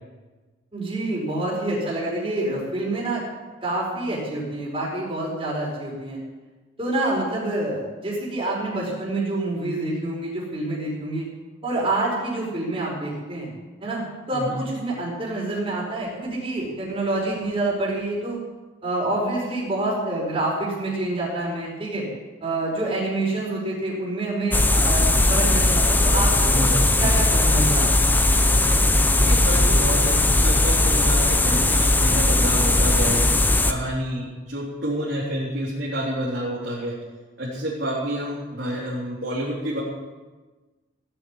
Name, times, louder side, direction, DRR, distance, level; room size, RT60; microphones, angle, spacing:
voice 1, 0.7-3.2 3.6-6.2 6.8-11.2 11.6-13.5 13.8-18.4 18.8-22.1 22.4-26.6 27.0-28.1, right 2 dB, 30° right, -5 dB, 4.9 m, -27 dB
sound 1, 24.5-33.7, left 1 dB, 10° left, 0.8 m, -18 dB
voice 2, 26.5-27.2 29.2-33.2 33.6-36.9 37.4-39.8, equal, 60° right, -6 dB, 3.8 m, -29 dB
17.5 x 8.0 x 9.8 m, 1.3 s
head